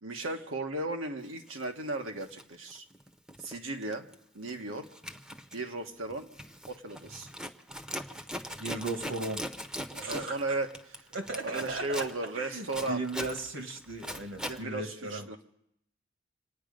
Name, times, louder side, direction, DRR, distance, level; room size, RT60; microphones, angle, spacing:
voice 1, 0.0-2.8 3.4-4.1 4.3-4.9 5.5-6.3 6.7-7.3 9.9-11.1 11.4-13.0 14.4-15.4, right 2 dB, 85° right, 5 dB, 1.5 m, -35 dB
Zipper (clothing), 1.5-1.6 2.2-3.6 3.8-4.2 4.5-14.6, equal, 5° right, 0.8 m, -41 dB
voice 2, 8.6-9.4 10.0-10.4 11.1-12.1 12.4-15.3, right 2 dB, 70° right, 5 dB, 2.0 m, -36 dB
27.0 x 9.6 x 5.2 m, 0.75 s
head